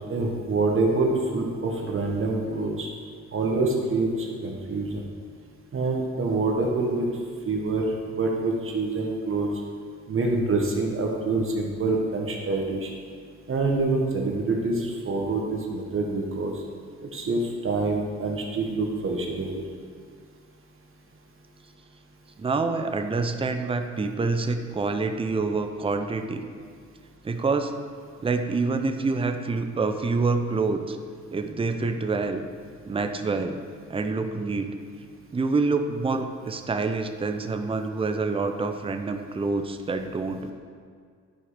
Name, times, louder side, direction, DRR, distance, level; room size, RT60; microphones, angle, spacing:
voice 1, 0.1-2.9 3.3-5.0 5.7-7.1 7.5-9.5 10.1-12.9 13.5-16.5 17.0-19.6, right 3 dB, 45° right, 0 dB, 1.5 m, -26 dB
voice 2, 22.4-26.5 27.2-27.7 28.2-31.0 31.3-32.5 32.9-34.8 35.3-40.5, right 3 dB, 20° right, 7 dB, 0.6 m, -27 dB
10.5 x 4.9 x 5.0 m, 2.1 s
cardioid pair, 90°, 30 cm